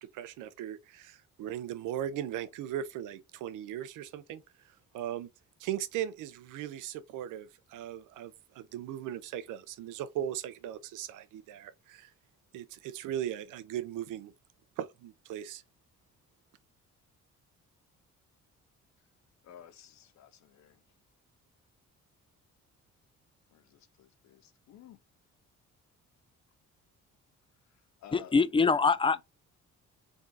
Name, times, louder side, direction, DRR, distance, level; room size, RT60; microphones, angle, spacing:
voice 1, 0.0-4.4 4.9-5.3 5.6-12.1 12.5-14.3 14.8-15.6, right 11 dB, 90° right, 0.6 m, -38 dB
voice 2, 19.4-20.8 23.5-25.0 28.0-28.4 29.1-29.2, left 10 dB, 65° left, 0.7 m, -53 dB
voice 3, 28.1-29.2, left 4 dB, 20° left, 0.3 m, -24 dB
3.6 x 2.7 x 4.0 m
cardioid pair, 90°, 30 cm